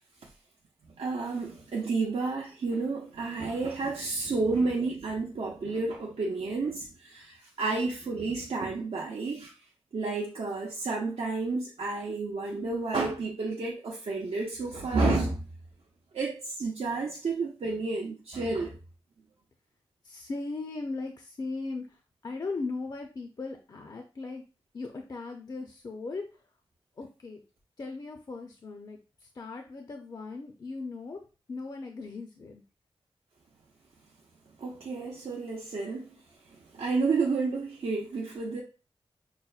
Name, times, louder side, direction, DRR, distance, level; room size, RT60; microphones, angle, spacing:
voice 1, 1.0-9.5 9.9-15.4 16.1-18.8 34.6-36.2 36.7-38.6, right 3 dB, 80° right, 0.6 m, -31 dB
voice 2, 20.0-24.4 24.7-26.4 27.0-27.4 27.8-31.2 31.5-32.6, left 3 dB, 40° left, 0.4 m, -38 dB
5.5 x 2.1 x 2.3 m
wide cardioid pair, 105°, 10 cm